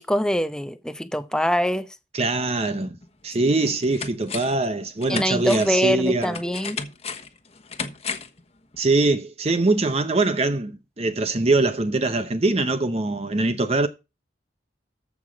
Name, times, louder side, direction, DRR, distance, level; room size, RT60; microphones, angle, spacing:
voice 1, 0.0-1.9 3.4-3.6 5.1-6.8, equal, 5° left, 0.7 m, -24 dB
voice 2, 2.1-3.0 3.2-6.3 8.8-13.9, right 2 dB, 35° right, 0.7 m, -22 dB
sound 1, 3.0-3.1 3.6-4.7 5.0-8.4 8.7-8.8, left 5 dB, 35° left, 1.2 m, -34 dB
14.0 x 5.8 x 5.0 m
head